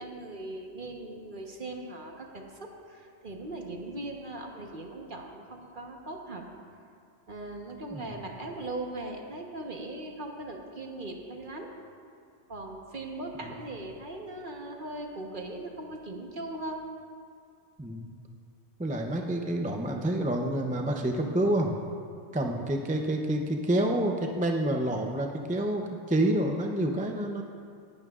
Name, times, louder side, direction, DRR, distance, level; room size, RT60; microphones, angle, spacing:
voice 1, 0.0-6.4 7.3-11.7 12.5-16.8, right 2 dB, 45° right, 1 dB, 1.3 m, -39 dB
voice 2, 7.9-8.3 17.8-18.1 18.8-21.7 22.3-27.4, right 1 dB, 10° right, 2 dB, 0.5 m, -28 dB
18.0 x 12.0 x 2.5 m, 2.3 s
omnidirectional pair, 1.2 m